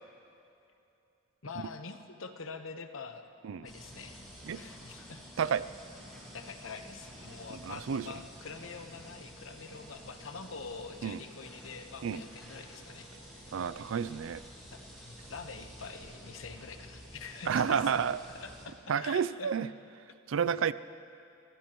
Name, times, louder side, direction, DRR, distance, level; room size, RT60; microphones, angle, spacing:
voice 1, 1.4-3.3 3.6-4.2 4.5-5.6 6.3-13.1 14.7-17.9 18.3-19.5, left 5 dB, 75° left, 7 dB, 1.0 m, -45 dB
sound 1, 3.6-18.7, equal, ahead, 4.8 m, -50 dB
voice 2, 7.6-8.1 11.0-11.2 12.0-12.2 13.5-14.4 17.5-18.2 18.9-19.7 20.3-20.7, right 7 dB, 65° right, 16 dB, 0.4 m, -30 dB
25.0 x 16.5 x 3.0 m, 2.6 s
head